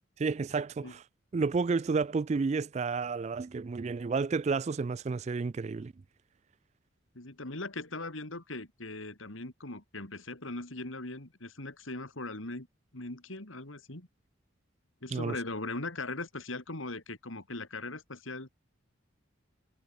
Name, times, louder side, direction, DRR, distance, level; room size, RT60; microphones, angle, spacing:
voice 1, 0.2-1.0 1.3-5.9 15.1-15.4, right 4 dB, 35° right, 0.3 m, -31 dB
voice 2, 7.2-12.7 12.9-14.1 15.0-18.6, left 2 dB, 80° left, 3.4 m, -40 dB
head